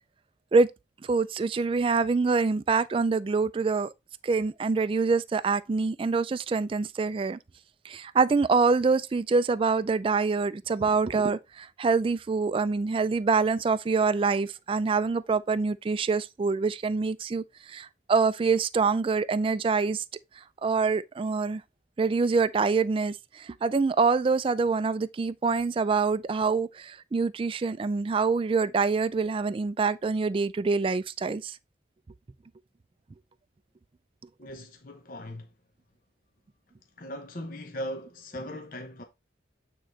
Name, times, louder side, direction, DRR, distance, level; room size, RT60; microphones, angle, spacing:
voice 1, 1.0-3.9 4.2-7.4 7.8-20.0 20.4-21.6 22.0-31.6, right 4 dB, 30° right, 0.3 m, -25 dB
voice 2, 34.4-35.5 37.0-39.0, equal, 50° left, 0.9 m, -39 dB
8.8 x 3.8 x 3.2 m
head